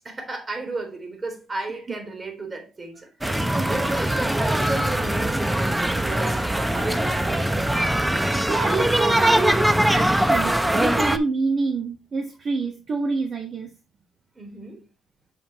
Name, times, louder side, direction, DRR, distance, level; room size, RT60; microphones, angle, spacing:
voice 1, 0.0-3.0 3.7-7.7 14.4-14.9, right 2 dB, 30° right, 3.9 m, -33 dB
sound 1, 3.2-11.2, right 1 dB, 10° right, 0.8 m, -22 dB
voice 2, 3.5-3.9 8.1-13.7, right 4 dB, 50° right, 1.4 m, -27 dB
7.2 x 7.0 x 3.0 m
cardioid pair, 90°, 0 cm